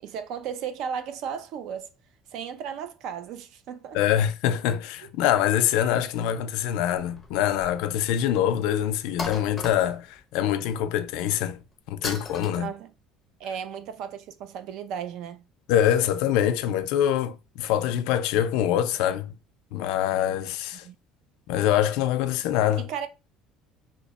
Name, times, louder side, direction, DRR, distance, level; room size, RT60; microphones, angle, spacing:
voice 1, 0.0-1.9 2.3-4.0 12.5-12.9 13.4-15.4 20.8-21.0 22.8-23.1, right 7 dB, 50° right, 0.4 m, -35 dB
voice 2, 3.9-11.6 11.9-12.7 15.7-19.3 19.7-20.9 21.5-22.9, left 11 dB, 70° left, 0.4 m, -24 dB
sound 1, 7.0-7.8 8.2-8.3 9.2-10.2 12.0-12.6, left 3 dB, 10° left, 0.5 m, -35 dB
2.7 x 2.1 x 4.0 m
cardioid pair, 180°, 0 cm